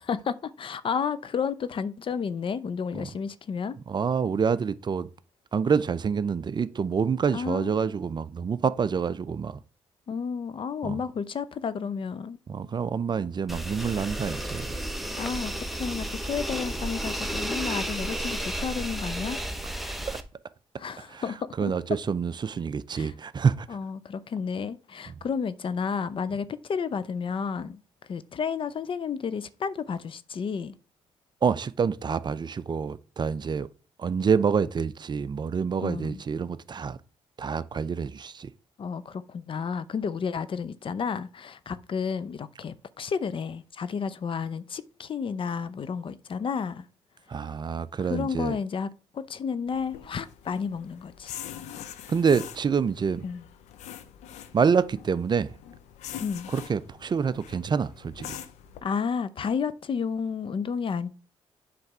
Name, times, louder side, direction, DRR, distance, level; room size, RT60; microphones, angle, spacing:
voice 1, 0.0-3.8 7.3-7.8 10.1-12.4 15.1-19.4 19.8-20.0 20.7-21.7 22.9-23.1 23.7-27.8 28.1-30.7 35.8-36.2 38.8-46.9 48.0-48.9 49.1-51.3 53.2-53.4 56.2-56.5 58.8-61.1, left 6 dB, 50° left, 0.6 m, -31 dB
voice 2, 3.9-5.1 5.5-9.6 10.8-11.0 12.5-14.8 19.6-19.9 21.1-21.2 21.6-23.7 31.4-33.7 34.0-37.0 37.4-38.5 47.3-48.6 52.1-53.2 54.5-55.5 56.5-58.4, right 6 dB, 40° right, 0.5 m, -27 dB
sound 1, 13.5-20.2, right 1 dB, ahead, 1.0 m, -32 dB
sound 2, 49.7-58.8, left 10 dB, 85° left, 0.7 m, -44 dB
7.9 x 3.4 x 6.0 m
supercardioid pair, 70°, 12 cm